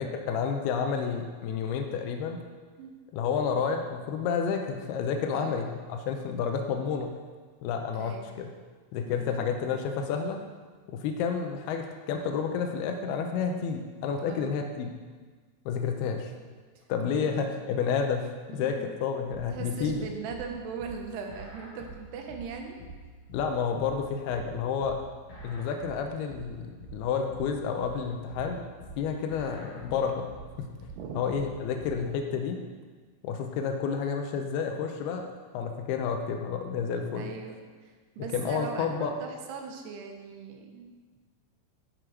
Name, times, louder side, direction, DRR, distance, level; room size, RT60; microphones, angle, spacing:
voice 1, 0.0-2.4 3.1-7.1 7.6-8.5 8.9-10.4 10.9-14.9 15.7-16.3 16.9-18.3 18.5-20.1 23.3-25.0 25.4-28.7 29.0-30.7 31.2-32.6 33.2-35.3 35.5-37.2 38.3-39.1, left 6 dB, 80° left, 4 dB, 2.6 m, -30 dB
voice 2, 5.3-5.6 7.9-8.3 9.1-9.5 14.3-14.6 17.1-17.4 18.5-18.9 19.3-22.8 29.6-29.9 30.9-31.3 37.1-37.6 37.8-40.9, right 6 dB, 85° right, 3 dB, 3.0 m, -40 dB
sound 1, 19.3-32.1, right 2 dB, 45° left, 2.4 m, -46 dB
9.7 x 6.6 x 4.7 m, 1.4 s
omnidirectional pair, 4.7 m